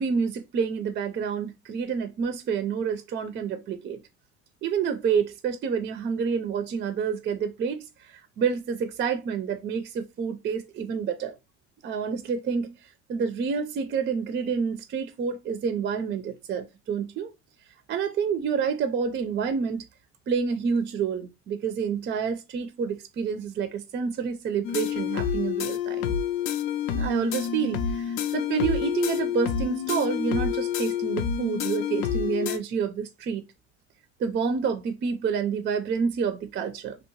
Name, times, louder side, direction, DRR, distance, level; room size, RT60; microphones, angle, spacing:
voice 1, 0.0-4.0 4.6-11.4 11.8-17.3 17.9-19.8 20.3-26.2 26.9-33.4 34.2-37.0, right 6 dB, 35° right, 0.4 m, -28 dB
sound 1, 24.6-32.6, left 8 dB, 75° left, 0.5 m, -28 dB
2.7 x 2.0 x 2.8 m
supercardioid pair, 85°, 31 cm